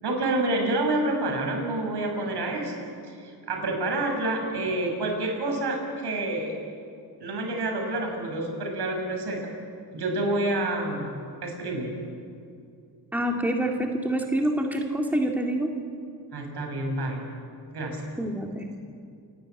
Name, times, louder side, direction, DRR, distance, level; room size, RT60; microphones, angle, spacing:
voice 1, 0.0-2.7 3.2-6.5 7.2-9.4 9.9-11.1 11.4-12.0 16.3-17.2 17.7-18.0, right 2 dB, 65° right, 2 dB, 5.8 m, -28 dB
voice 2, 13.1-15.7 18.2-18.8, right 1 dB, 5° right, 2 dB, 2.2 m, -26 dB
28.5 x 11.5 x 9.0 m, 2.4 s
cardioid pair, 80°, 42 cm